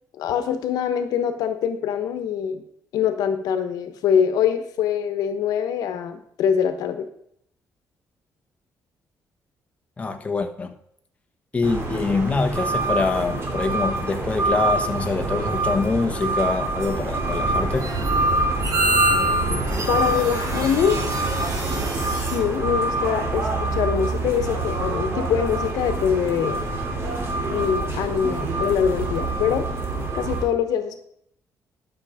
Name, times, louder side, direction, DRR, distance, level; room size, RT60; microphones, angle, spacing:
voice 1, 0.2-2.6 2.9-7.1 19.9-21.0 22.0-26.6 27.5-29.7 30.1-31.0, left 8 dB, 85° left, 9 dB, 1.2 m, -24 dB
voice 2, 10.0-10.7 11.5-17.9, left 4 dB, 20° left, 5 dB, 1.3 m, -25 dB
sound 1, 11.6-30.4, right 2 dB, 40° right, 3.1 m, -26 dB
sound 2, 16.8-22.4, right 2 dB, 65° right, 3.2 m, -27 dB
12.0 x 6.5 x 5.0 m, 0.71 s
cardioid pair, 110°, 6 cm